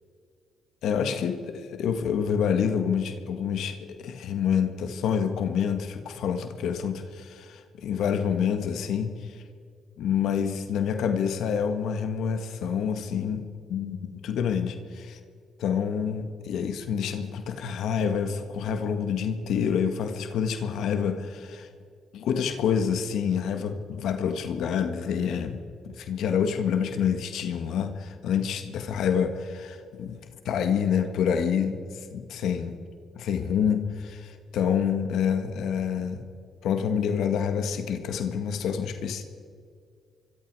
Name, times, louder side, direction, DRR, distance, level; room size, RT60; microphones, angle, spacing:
voice 1, 0.8-9.4 10.0-15.2 15.6-21.7 22.1-25.6 25.9-32.8 33.2-36.2 36.6-39.2, left 7 dB, 80° left, 7 dB, 1.8 m, -27 dB
26.0 x 24.0 x 4.8 m, 2.2 s
cardioid pair, 90°, 0 cm